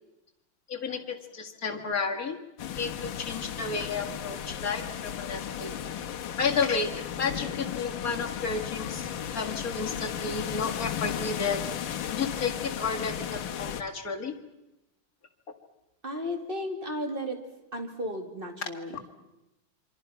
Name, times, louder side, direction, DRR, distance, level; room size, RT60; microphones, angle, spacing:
voice 1, 0.7-2.4 2.8-5.7 6.4-11.6 12.1-14.3, left 5 dB, 45° left, 2 dB, 2.4 m, -32 dB
sound 1, 2.6-13.8, left 9 dB, 70° left, 1.8 m, -35 dB
voice 2, 16.0-17.4 17.7-19.0, equal, 25° right, 3 dB, 2.8 m, -34 dB
27.5 x 25.0 x 5.8 m, 0.94 s
omnidirectional pair, 2.3 m